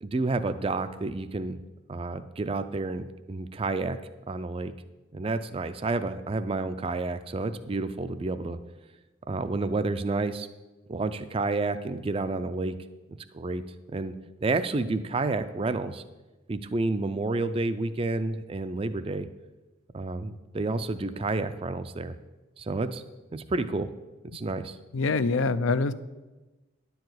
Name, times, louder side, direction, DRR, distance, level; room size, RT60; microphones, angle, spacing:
voice 1, 0.0-1.6 1.9-4.0 4.3-4.7 5.1-8.6 9.3-10.5 10.9-12.8 13.3-13.6 13.9-14.1 14.4-16.0 16.5-19.3 19.9-22.2 22.6-23.0 23.3-23.9 24.3-24.8, right 3 dB, 25° right, 11 dB, 0.4 m, -30 dB
voice 2, 24.9-25.9, left 3 dB, 75° left, 13 dB, 0.5 m, -24 dB
10.5 x 4.7 x 7.9 m, 1.1 s
head